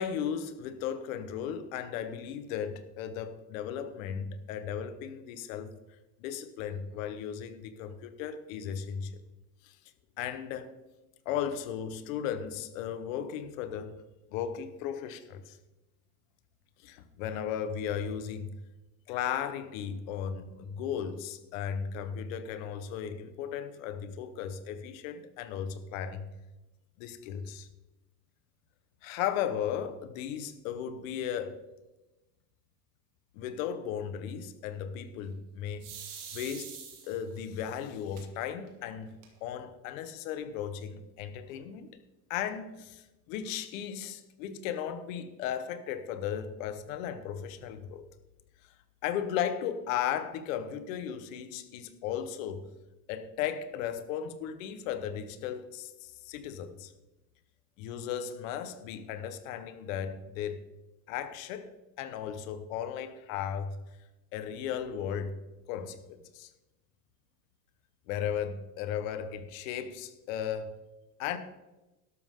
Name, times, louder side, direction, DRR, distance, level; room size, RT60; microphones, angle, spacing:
voice 1, 0.0-5.7 6.2-9.2 9.6-9.8 10.2-10.7 11.2-14.0 14.3-15.6 16.8-18.6 19.1-26.3 27.0-27.7 29.0-31.6 33.3-35.9 36.3-36.8 37.1-41.9 42.3-48.0 49.0-52.7 53.1-56.9 57.8-60.6 61.1-63.8 64.3-65.4 65.7-66.5 68.1-70.8 71.2-71.4, left 8 dB, 60° left, 10 dB, 1.4 m, -36 dB
sound 1, 35.8-37.4 38.2-38.3 38.7-38.8 39.0-39.6, right 7 dB, 45° right, 2.6 m, -44 dB
12.5 x 12.0 x 3.8 m, 1.0 s
cardioid pair, 170°, 44 cm